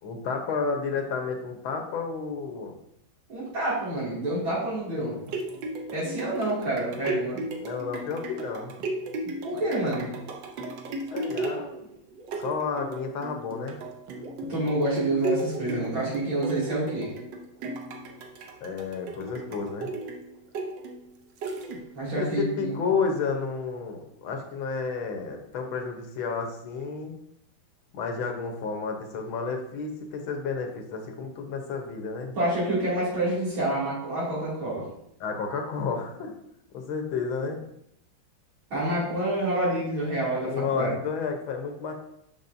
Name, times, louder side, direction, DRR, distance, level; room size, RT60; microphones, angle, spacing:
voice 1, 0.0-2.7 7.6-8.7 11.1-11.9 12.4-13.8 18.6-19.9 22.2-27.2 27.9-32.4 35.2-36.3 36.7-37.6 40.4-41.9, left 5 dB, 85° left, 4 dB, 1.8 m, -31 dB
voice 2, 3.3-5.2 5.9-7.4 9.4-10.1 14.5-17.1 21.9-22.7 32.4-34.9 38.7-40.9, right 1 dB, 85° right, -7 dB, 3.4 m, -28 dB
sound 1, 5.0-22.1 22.7-22.8, right 2 dB, 70° right, 1.4 m, -35 dB
7.1 x 6.2 x 2.6 m, 0.76 s
omnidirectional pair, 2.2 m